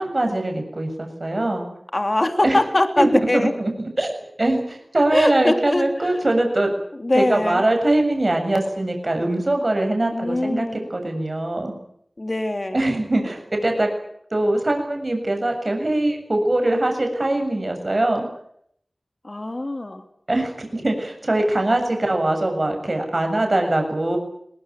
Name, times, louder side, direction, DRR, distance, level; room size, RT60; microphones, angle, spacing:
voice 1, 0.0-1.7 2.4-2.6 3.0-6.7 7.1-11.7 12.7-13.9 14.3-18.3 20.3-24.2, right 1 dB, 50° right, 4 dB, 7.3 m, -22 dB
voice 2, 1.9-3.5 5.1-6.2 6.9-7.6 10.1-10.9 12.2-12.8 19.2-20.0, left 1 dB, 45° left, 7 dB, 3.3 m, -22 dB
22.5 x 19.5 x 9.5 m, 0.69 s
wide cardioid pair, 45°, 0 cm